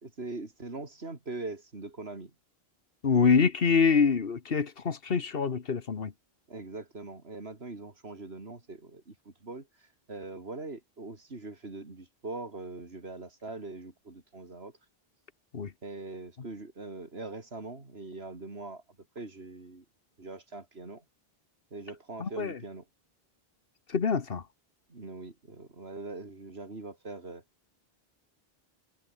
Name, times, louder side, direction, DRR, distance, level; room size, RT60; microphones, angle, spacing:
voice 1, 0.0-2.3 6.5-14.7 15.8-18.8 19.2-19.9 20.2-21.0 21.7-22.9 24.9-27.4, right 3 dB, 85° right, 3.5 m, -42 dB
voice 2, 3.0-6.1 15.5-15.7 22.2-22.5 23.9-24.4, left 5 dB, 65° left, 1.5 m, -25 dB
omnidirectional pair, 1.0 m